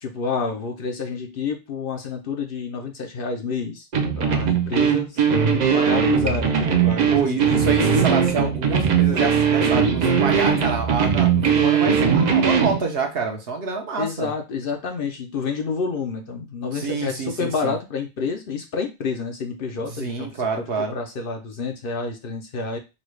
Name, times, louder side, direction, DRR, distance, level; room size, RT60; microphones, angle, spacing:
voice 1, 0.0-3.9 4.2-5.2 5.7-7.1 14.0-20.3 20.6-22.8, left 5 dB, 60° left, 3 dB, 0.8 m, -29 dB
sound 1, 3.9-12.8, right 7 dB, 50° right, 0.6 m, -19 dB
voice 2, 7.1-14.3 16.7-17.8 19.7-21.0, right 4 dB, 70° right, 2 dB, 1.1 m, -27 dB
4.0 x 2.3 x 3.1 m, 0.26 s
omnidirectional pair, 1.1 m